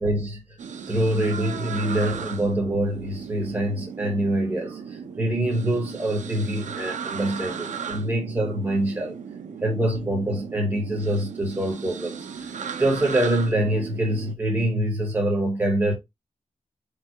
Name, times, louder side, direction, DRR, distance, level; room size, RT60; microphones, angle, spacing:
voice 1, 0.0-0.6 0.9-9.2 9.6-15.9, right 1 dB, 15° right, 1.2 m, -25 dB
sound 1, 0.6-14.4, right 6 dB, 90° right, 0.5 m, -36 dB
4.7 x 2.3 x 4.4 m
wide cardioid pair, 175°, 12 cm